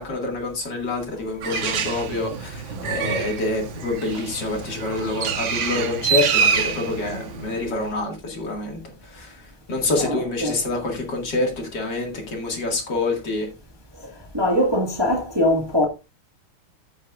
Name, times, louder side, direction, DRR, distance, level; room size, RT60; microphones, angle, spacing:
voice 1, 0.0-9.4 9.7-13.5, left 2 dB, 55° left, 2.6 m, -27 dB
Bird, 1.4-7.9, right 6 dB, 70° right, 1.9 m, -26 dB
voice 2, 10.0-10.5 14.3-15.9, left 1 dB, 15° right, 1.5 m, -21 dB
14.5 x 6.5 x 2.4 m
omnidirectional pair, 2.3 m